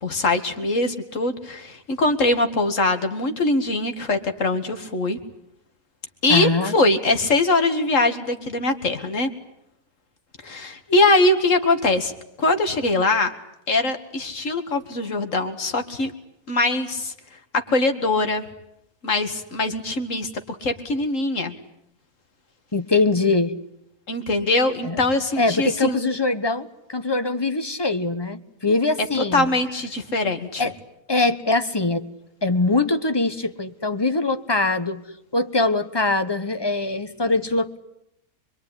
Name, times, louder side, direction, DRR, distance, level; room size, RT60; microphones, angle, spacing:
voice 1, 0.0-5.2 6.2-9.3 10.4-12.1 12.4-13.3 13.7-16.1 16.5-17.1 17.5-18.4 19.0-21.5 24.1-26.0 29.3-30.7, left 2 dB, 55° left, 7 dB, 2.4 m, -22 dB
voice 2, 6.3-6.7 22.7-23.5 24.8-25.0 25.4-29.5 30.6-30.7 31.1-32.0 32.4-35.0 35.3-37.8, left 3 dB, 20° left, 10 dB, 1.1 m, -22 dB
26.0 x 22.5 x 9.9 m, 0.79 s
omnidirectional pair, 1.6 m